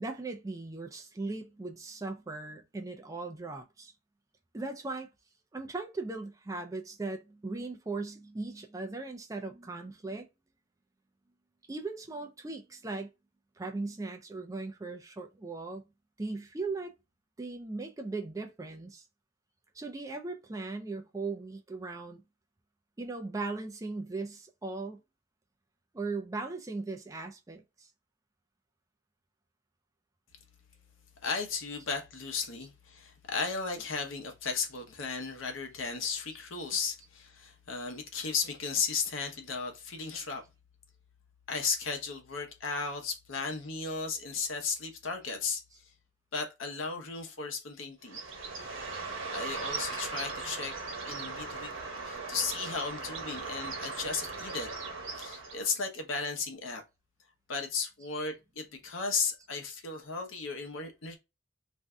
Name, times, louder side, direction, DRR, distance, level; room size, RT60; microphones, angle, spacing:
voice 1, 0.0-3.9 4.5-5.1 5.5-10.3 11.7-13.1 13.6-15.8 16.2-16.9 17.4-19.0 19.7-22.2 23.0-25.0 25.9-27.9, right 3 dB, 15° right, 0.4 m, -38 dB
voice 2, 31.2-40.4 41.5-45.6 46.3-48.2 49.3-50.8 51.1-51.7 52.0-54.7 55.1-56.8 57.5-61.2, left 5 dB, 90° left, 0.8 m, -35 dB
Bird, 48.0-55.8, right 4 dB, 90° right, 0.9 m, -38 dB
2.6 x 2.2 x 3.5 m
head